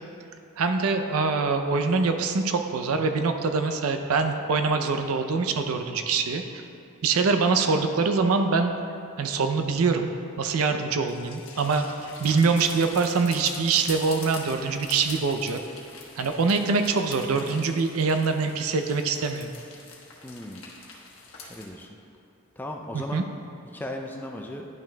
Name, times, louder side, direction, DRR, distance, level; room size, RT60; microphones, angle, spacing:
voice 1, 0.6-6.6 7.0-8.8 9.2-10.1 10.4-11.9 12.2-15.6 16.2-19.5 22.9-23.2, right 4 dB, 90° right, 6 dB, 0.5 m, -24 dB
sound 1, 11.0-21.7, left 4 dB, 70° left, 1.1 m, -44 dB
voice 2, 20.2-20.6 21.5-21.9 22.6-23.3 23.7-24.7, left 1 dB, 10° left, 2 dB, 0.3 m, -36 dB
10.5 x 5.9 x 2.2 m, 2.7 s
head